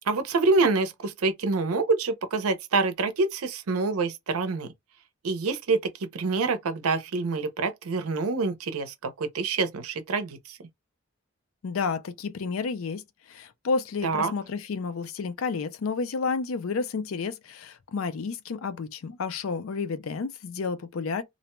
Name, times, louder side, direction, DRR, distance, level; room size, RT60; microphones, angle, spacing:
voice 1, 0.1-4.7 5.2-10.6 14.0-14.3, right 3 dB, 85° right, 0.6 m, -26 dB
voice 2, 11.6-21.2, left 4 dB, 70° left, 0.4 m, -31 dB
2.5 x 2.1 x 3.0 m
head